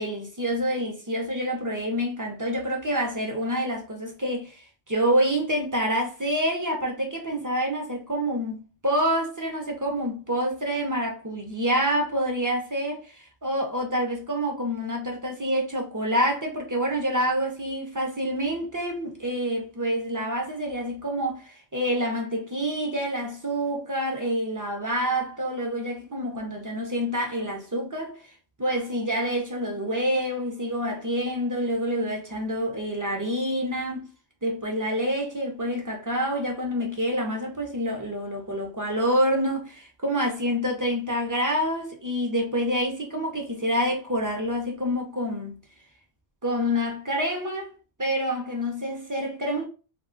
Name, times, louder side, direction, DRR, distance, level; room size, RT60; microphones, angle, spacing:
voice 1, 0.0-34.1 34.4-45.6 46.4-47.7 48.0-49.7, equal, 30° right, 0.3 m, -27 dB
2.2 x 2.2 x 3.6 m
omnidirectional pair, 1.1 m